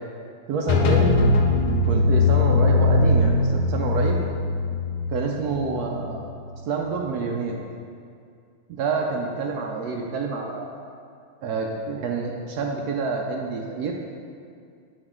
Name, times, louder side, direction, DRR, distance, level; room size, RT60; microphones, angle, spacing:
voice 1, 0.5-1.2 1.9-4.2 5.1-6.2 6.6-7.6 8.7-10.7 11.4-13.9, right 4 dB, 85° right, 0 dB, 0.8 m, -27 dB
sound 1, 0.7-6.4, left 3 dB, 80° left, 1.5 m, -20 dB
8.1 x 5.0 x 3.6 m, 2.3 s
omnidirectional pair, 2.3 m